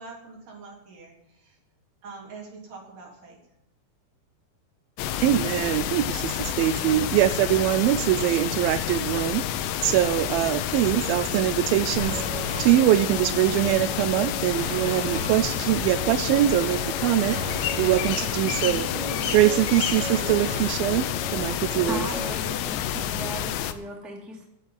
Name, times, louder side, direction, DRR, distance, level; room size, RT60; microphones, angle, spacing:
voice 1, 0.0-1.6 2.0-3.4, right 4 dB, 50° right, -2 dB, 4.9 m, -44 dB
sound 1, 5.0-23.7, left 10 dB, 90° left, 3.1 m, -29 dB
voice 2, 5.2-9.5 9.8-12.2 12.6-17.4 17.8-18.9 19.3-22.0, right 13 dB, 85° right, 11 dB, 2.1 m, -23 dB
sound 2, 12.0-22.6, right 1 dB, 30° right, 3.2 m, -37 dB
sound 3, 17.1-23.3, left 8 dB, 70° left, 1.7 m, -36 dB
voice 3, 21.8-24.4, equal, ahead, -2 dB, 1.9 m, -36 dB
15.5 x 6.6 x 9.7 m, 0.79 s
omnidirectional pair, 4.9 m